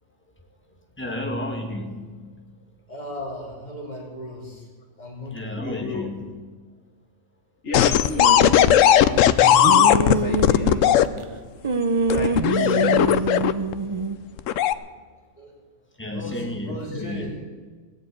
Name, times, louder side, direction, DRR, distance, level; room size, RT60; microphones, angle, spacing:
voice 1, 1.0-2.5 5.3-6.4 12.5-13.3 16.0-17.3, left 1 dB, 10° left, 2 dB, 1.8 m, -33 dB
voice 2, 2.9-4.7 5.0-5.6 15.4-15.5 16.1-17.3, left 1 dB, 35° left, -3 dB, 4.2 m, -36 dB
voice 3, 5.6-6.1 7.6-11.3 12.1-12.9, left 3 dB, 65° left, 0 dB, 1.9 m, -33 dB
sound 1, 7.7-11.1 12.1-13.7 14.4-14.7, left 10 dB, 90° left, 1.0 m, -17 dB
sound 2, 8.2-8.8 9.4-11.2 11.6-14.2, right 3 dB, 35° right, 0.6 m, -25 dB
18.0 x 7.7 x 9.6 m, 1.5 s
omnidirectional pair, 1.3 m